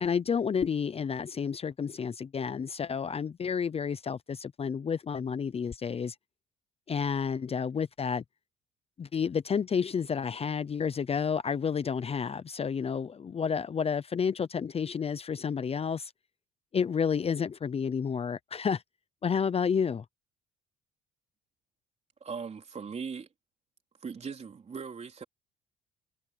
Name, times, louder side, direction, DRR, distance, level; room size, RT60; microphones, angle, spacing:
voice 1, 0.0-6.2 6.9-8.2 9.0-16.1 16.7-18.8 19.2-20.0, left 6 dB, 30° left, 0.8 m, -30 dB
voice 2, 22.2-23.3 24.0-25.2, right 5 dB, 35° right, 3.7 m, -39 dB
supercardioid pair, 85°, 19 cm